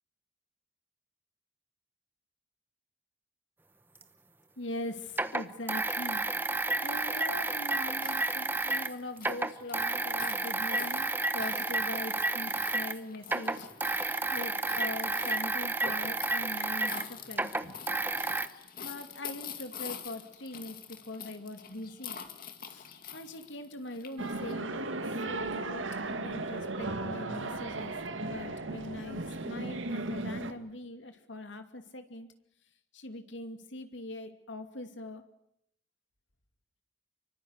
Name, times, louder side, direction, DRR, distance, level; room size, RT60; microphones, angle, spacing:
sound 1, 4.0-4.1 5.1-8.9 9.2-13.0 13.2-18.5, right 2 dB, 10° right, 1.0 m, -31 dB
voice 1, 4.6-6.5 6.8-17.5 18.8-22.3 22.6-24.9 25.2-27.9 28.2-32.3 32.9-35.2, left 1 dB, 75° left, 7 dB, 2.7 m, -42 dB
sound 2, 6.9-24.5, left 7 dB, 45° left, 2.4 m, -47 dB
sound 3, 24.2-30.5, right 2 dB, 85° right, 1.9 m, -36 dB
25.0 x 24.0 x 8.2 m, 0.73 s
head